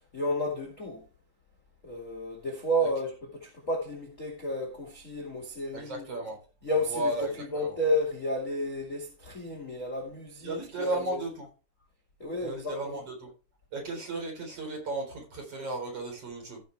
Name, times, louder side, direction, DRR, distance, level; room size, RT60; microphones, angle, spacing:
voice 1, 0.1-1.0 1.8-6.1 6.6-7.1 7.4-11.2 12.2-13.0, equal, 30° left, 1.7 m, -32 dB
voice 2, 5.7-6.4 6.9-7.8 10.4-11.5 12.4-13.3 13.7-16.6, right 2 dB, 40° right, 5.0 m, -35 dB
15.5 x 6.3 x 3.3 m
omnidirectional pair, 4.4 m